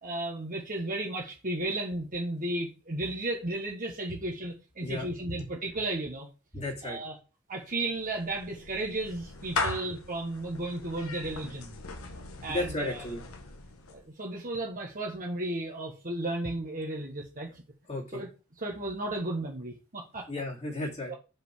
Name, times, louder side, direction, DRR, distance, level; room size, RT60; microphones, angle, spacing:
voice 1, 0.0-6.3 6.8-7.1 7.5-11.7 12.4-13.1 13.9-17.6 18.1-18.3 18.6-20.3 21.1-21.2, right 2 dB, 40° right, -1 dB, 1.5 m, -34 dB
voice 2, 6.5-7.0 9.6-9.7 12.5-13.2 17.9-18.2 20.3-21.1, left 2 dB, 30° left, -3 dB, 2.6 m, -34 dB
Clapping / Meow, 7.7-14.1, left 3 dB, 85° left, 1.3 m, -39 dB
5.3 x 5.2 x 6.3 m, 0.31 s
head